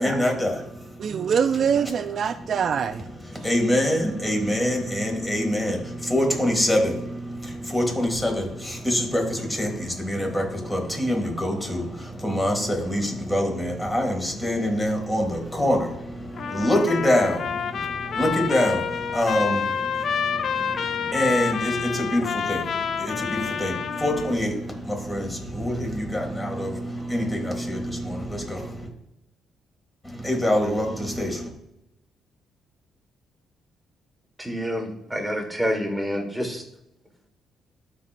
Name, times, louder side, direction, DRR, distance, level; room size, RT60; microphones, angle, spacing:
voice 1, 0.0-1.2 3.2-28.9 30.0-31.5, left 1 dB, 10° left, 2.3 m, -25 dB
voice 2, 1.0-3.1, right 7 dB, 55° right, 0.3 m, -24 dB
Trumpet, 16.3-24.4, left 7 dB, 55° left, 0.5 m, -28 dB
voice 3, 34.4-36.6, equal, 5° right, 1.6 m, -28 dB
13.5 x 4.5 x 2.6 m
cardioid pair, 90°, 0 cm